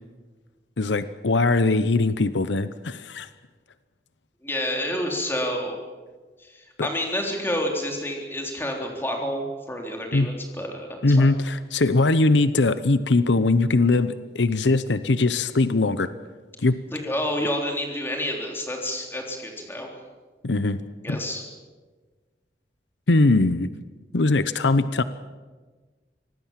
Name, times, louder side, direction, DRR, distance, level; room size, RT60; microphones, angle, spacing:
voice 1, 0.8-3.3 6.8-6.9 10.1-10.3 11.0-16.1 16.6-16.8 20.4-20.8 21.1-21.2 23.1-23.7 24.1-25.0, left 2 dB, 85° left, 13 dB, 0.9 m, -21 dB
voice 2, 4.4-5.8 6.4-11.3 16.9-19.9 21.0-21.4, left 1 dB, 15° left, 1 dB, 3.6 m, -29 dB
25.0 x 18.5 x 7.5 m, 1.3 s
head